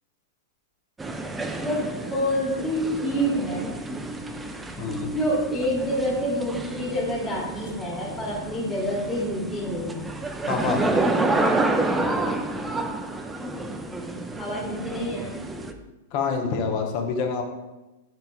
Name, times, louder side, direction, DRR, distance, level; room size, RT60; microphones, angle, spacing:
sound 1, 1.0-15.7, right 2 dB, 10° right, 0.3 m, -29 dB
voice 1, 1.6-3.6 5.1-10.1 14.3-15.3, equal, 20° left, -5 dB, 1.2 m, -27 dB
voice 2, 4.8-5.1 10.5-10.8 16.1-17.4, left 5 dB, 50° left, 3 dB, 0.7 m, -26 dB
4.5 x 4.0 x 2.3 m, 1.1 s
hypercardioid pair, 115°, 0 cm